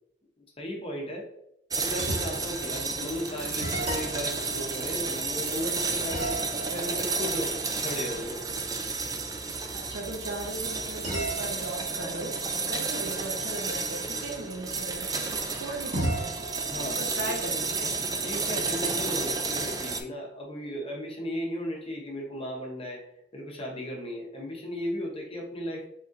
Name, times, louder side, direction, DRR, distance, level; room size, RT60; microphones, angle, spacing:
voice 1, 0.6-1.3 1.8-6.4 6.7-7.5 7.8-8.4 16.7-17.3 18.2-23.0 23.3-25.9, equal, 30° left, 0 dB, 0.8 m, -35 dB
sound 1, 1.7-20.0, right 4 dB, 20° right, 0.3 m, -32 dB
sound 2, 1.9-2.6 3.1-3.2 3.6-5.6 6.1-8.7 11.0-13.7 15.9-18.5, right 1 dB, 40° right, 1.5 m, -37 dB
voice 2, 9.9-12.3 12.7-16.4 16.7-18.0, right 2 dB, 60° right, 1 dB, 0.9 m, -37 dB
4.1 x 3.6 x 2.5 m, 0.77 s
head